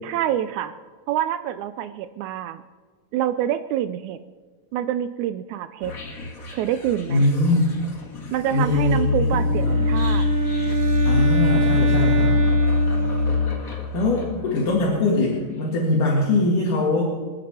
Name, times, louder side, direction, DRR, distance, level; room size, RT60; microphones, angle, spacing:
voice 1, 0.0-0.8 1.1-2.6 3.1-4.2 4.7-5.9 6.5-7.3 8.3-10.3, right 11 dB, 80° right, 12 dB, 1.8 m, -26 dB
sound 1, 5.8-15.0, left 4 dB, 40° left, 1.4 m, -24 dB
voice 2, 7.1-7.7 8.5-9.0 9.6-9.9 11.1-12.4 13.9-17.0, left 2 dB, 70° left, -4 dB, 3.6 m, -21 dB
Wind instrument woodwind instrument, 9.2-13.8, right 8 dB, 40° right, 1.8 m, -27 dB
27.5 x 9.4 x 4.3 m, 1.4 s
omnidirectional pair, 3.8 m